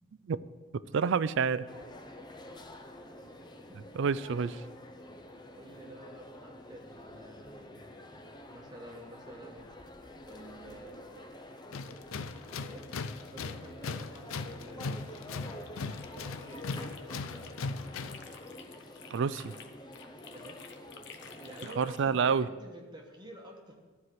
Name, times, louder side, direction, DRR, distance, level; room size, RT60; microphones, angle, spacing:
voice 1, 0.9-1.7 3.9-4.6 19.1-19.5 21.8-22.5, right 6 dB, 65° right, 16 dB, 0.4 m, -28 dB
sound 1, 1.7-21.6, left 1 dB, 20° left, 0.7 m, -48 dB
voice 2, 2.3-2.7 5.5-8.0 8.5-9.7 10.2-11.6 12.5-12.8 13.3-16.7 17.3-17.6 20.3-20.6 21.4-23.8, right 1 dB, 20° right, 1 dB, 1.2 m, -50 dB
Tools, 11.7-18.3, left 4 dB, 85° left, 0.5 m, -39 dB
sound 2, 15.4-17.6 17.9-22.1, left 7 dB, 60° left, 0.9 m, -52 dB
13.0 x 4.8 x 7.7 m, 1.3 s
head